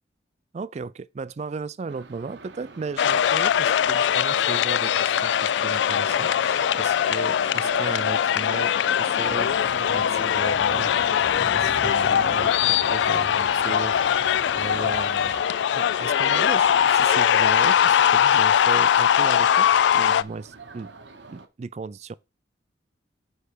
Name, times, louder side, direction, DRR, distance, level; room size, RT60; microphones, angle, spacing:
voice 1, 0.5-11.2 11.5-12.5 12.8-14.2 14.6-15.4 15.7-20.9 21.3-22.1, right 4 dB, 35° right, 0.3 m, -35 dB
sound 1, 1.9-21.5, right 4 dB, 70° right, 0.9 m, -44 dB
sound 2, 3.0-20.2, left 9 dB, 70° left, 0.3 m, -21 dB
sound 3, 9.2-15.4, left 1 dB, 55° left, 1.8 m, -42 dB
9.1 x 3.3 x 5.0 m
head